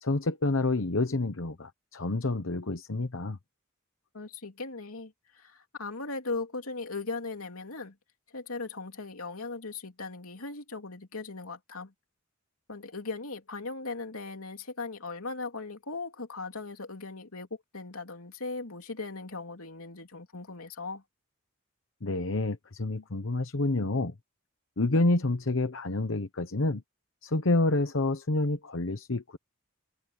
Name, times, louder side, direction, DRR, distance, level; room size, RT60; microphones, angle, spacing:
voice 1, 0.0-3.4 22.0-24.1 24.8-26.8 27.2-29.4, left 2 dB, 65° left, 1.0 m, -28 dB
voice 2, 4.1-7.9 8.3-11.9 12.7-17.5 17.7-21.0, left 3 dB, 90° left, 3.1 m, -38 dB
head